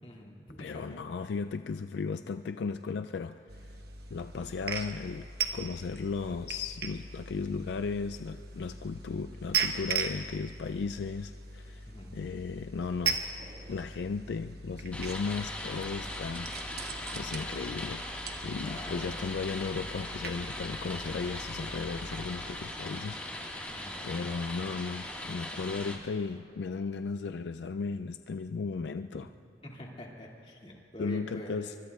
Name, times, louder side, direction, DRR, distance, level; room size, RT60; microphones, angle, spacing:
voice 1, 0.0-1.0 11.9-12.2 18.6-19.3 23.7-24.1 29.6-31.8, equal, 35° left, -2 dB, 2.2 m, -45 dB
voice 2, 0.6-3.8 4.1-5.3 5.5-13.2 13.7-16.7 17.1-18.0 18.4-23.2 24.0-29.3 31.0-31.7, left 4 dB, 70° left, 9 dB, 0.3 m, -35 dB
sound 1, 3.5-22.3, right 5 dB, 60° right, 1.2 m, -39 dB
sound 2, 13.4-16.4 16.8-17.5, right 1 dB, 35° right, 2.0 m, -57 dB
sound 3, 14.9-26.0, left 1 dB, 10° left, 1.6 m, -40 dB
25.5 x 24.5 x 2.3 m, 2.8 s
head